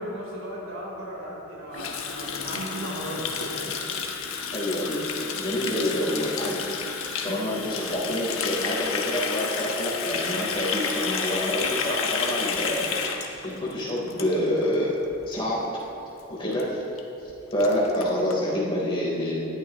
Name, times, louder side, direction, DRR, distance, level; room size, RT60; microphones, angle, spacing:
voice 1, 0.0-3.8 7.2-7.6, right 1 dB, 90° right, -4 dB, 3.7 m, -36 dB
Water tap faucet, 1.7-14.7 15.0-15.3 15.6-15.9 16.2-16.3 16.5-16.6 17.0-17.1 17.3-18.3, left 5 dB, 85° left, 1.2 m, -31 dB
voice 2, 4.5-5.0 5.4-6.8 7.2-15.0 15.2-15.6 16.3-16.8 17.5-19.5, left 1 dB, 25° left, -6 dB, 3.5 m, -27 dB
20.0 x 13.5 x 3.0 m, 2.9 s
head